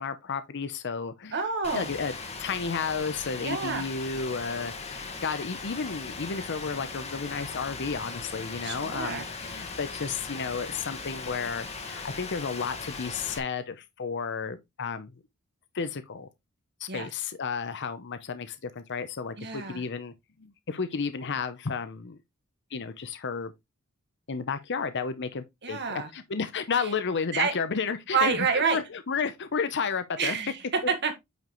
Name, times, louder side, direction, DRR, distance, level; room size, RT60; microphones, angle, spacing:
voice 1, 0.0-1.4 1.7-2.1 2.4-15.1 15.7-16.3 16.8-20.1 20.4-22.2 22.7-23.5 24.3-30.4, left 5 dB, 55° left, 0.7 m, -32 dB
voice 2, 1.3-1.9 3.4-3.9 8.6-9.3 16.9-17.1 19.4-19.8 25.6-26.1 26.8-26.9 27.3-27.5 28.1-28.8 30.2-31.1, right 5 dB, 50° right, 1.5 m, -28 dB
Rain, 1.6-13.4, left 4 dB, 30° left, 1.5 m, -39 dB
9.2 x 5.3 x 3.1 m
head